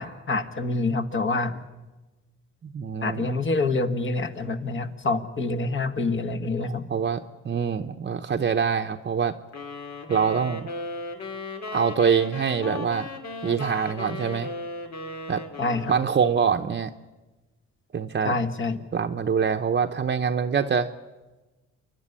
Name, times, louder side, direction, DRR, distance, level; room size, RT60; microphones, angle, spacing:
voice 1, 0.0-1.6 3.0-6.9 15.6-15.9 18.2-18.8, left 3 dB, 40° left, 7 dB, 1.8 m, -26 dB
voice 2, 2.6-3.3 6.6-9.3 10.1-10.7 11.7-13.1 13.4-14.5 15.3-15.4 15.9-16.9 17.9-18.3 18.9-20.9, right 6 dB, 35° right, 5 dB, 0.9 m, -25 dB
sound 1, 9.5-16.5, left 2 dB, 65° left, 2.7 m, -36 dB
28.5 x 11.5 x 9.9 m, 1.1 s
cardioid pair, 90°, 30 cm